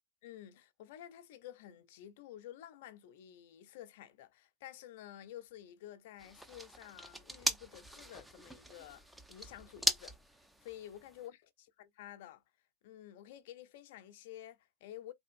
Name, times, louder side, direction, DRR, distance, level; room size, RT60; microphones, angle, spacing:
voice 1, 0.2-10.2 10.6-12.4 12.8-15.1, left 12 dB, 60° left, 0.5 m, -51 dB
sound 1, 6.2-11.3, equal, 5° right, 0.4 m, -39 dB
3.3 x 2.4 x 2.5 m
hypercardioid pair, 100°, 0 cm